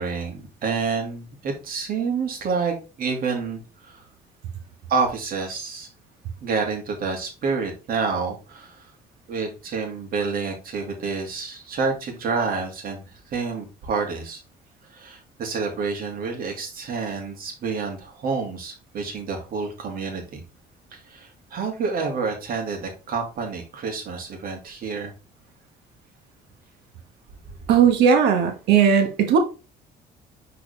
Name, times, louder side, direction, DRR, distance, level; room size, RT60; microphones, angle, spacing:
voice 1, 0.0-4.1 4.9-5.9 6.4-8.9 9.3-14.4 14.9-20.4 20.9-25.1, right 5 dB, 60° right, 2.7 m, -28 dB
voice 2, 27.7-29.4, right 7 dB, 80° right, 1.5 m, -17 dB
6.6 x 4.7 x 3.4 m
cardioid pair, 110°, 17 cm